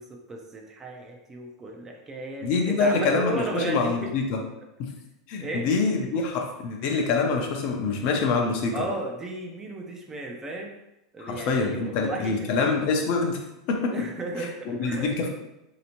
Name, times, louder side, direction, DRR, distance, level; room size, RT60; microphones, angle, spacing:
voice 1, 0.0-4.1 5.4-5.7 8.7-10.7 11.1-12.5 13.9-15.1, right 2 dB, 20° right, 1 dB, 0.5 m, -34 dB
voice 2, 2.4-4.4 4.8-4.9 5.3-8.8 11.2-13.4 13.7-13.9 14.4-15.3, left 4 dB, 50° left, 2 dB, 0.7 m, -25 dB
3.2 x 2.8 x 2.9 m, 0.91 s
supercardioid pair, 130°, 3 cm